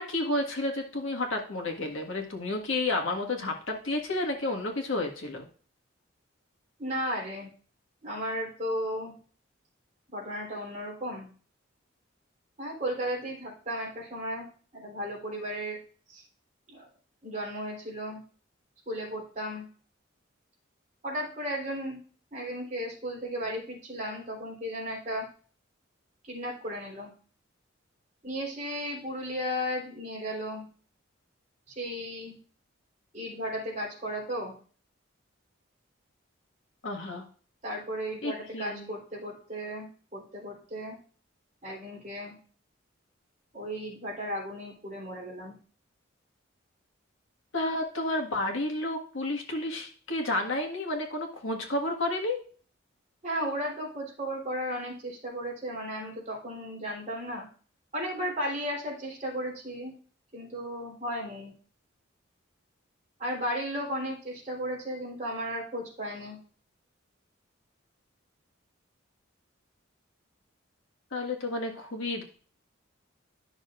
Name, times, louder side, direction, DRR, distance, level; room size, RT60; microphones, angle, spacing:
voice 1, 0.0-5.4 36.8-37.2 38.2-38.9 47.5-52.4 71.1-72.2, left 2 dB, 80° left, 2 dB, 1.6 m, -31 dB
voice 2, 6.8-7.5 8.0-9.1 10.1-11.3 12.6-14.5 14.7-15.8 16.1-16.2 16.7-16.8 17.2-18.2 18.9-19.6 21.0-22.0 22.3-25.3 26.2-27.1 28.2-30.6 31.7-32.3 33.1-34.5 37.6-41.0 41.6-42.3 43.5-45.5 53.2-57.4 57.9-59.9 60.3-61.5 63.2-66.4, equal, 35° right, -4 dB, 3.4 m, -35 dB
11.0 x 6.3 x 2.5 m, 0.42 s
head